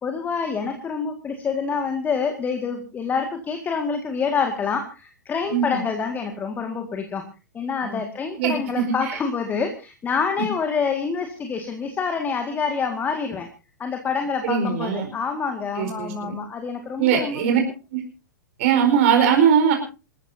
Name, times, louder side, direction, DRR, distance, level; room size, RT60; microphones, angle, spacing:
voice 1, 0.0-7.2 7.5-13.5 13.8-17.6, left 5 dB, 15° left, 5 dB, 2.0 m, -27 dB
voice 2, 5.5-5.8 7.8-8.0 8.4-9.2 10.4-10.5 14.4-15.1 15.8-16.3 17.0-17.6 17.9-18.0 18.6-19.7, right 7 dB, 45° right, 4 dB, 4.7 m, -21 dB
28.0 x 14.0 x 2.8 m, 0.32 s
figure-of-eight pair, 105°, 10 cm